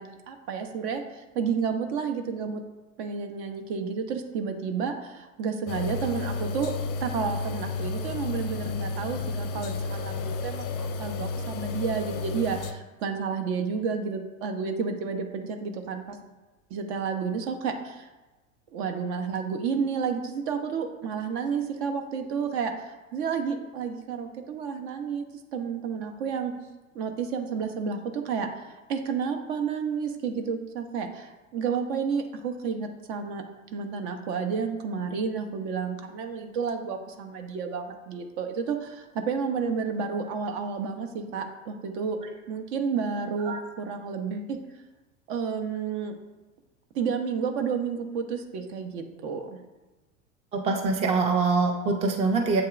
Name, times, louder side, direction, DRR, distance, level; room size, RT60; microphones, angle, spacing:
voice 1, 0.0-2.6 3.0-6.7 7.0-16.2 16.7-18.1 18.7-25.2 25.5-26.5 26.9-33.4 33.7-42.2 42.5-44.6 45.3-46.1 46.9-49.6, right 6 dB, 55° right, 6 dB, 0.7 m, -31 dB
sound 1, 5.7-12.7, left 4 dB, 35° left, 0.5 m, -32 dB
voice 2, 50.5-52.6, right 4 dB, 15° right, 3 dB, 0.4 m, -24 dB
7.6 x 2.8 x 2.4 m, 1.2 s
figure-of-eight pair, 80°, 41 cm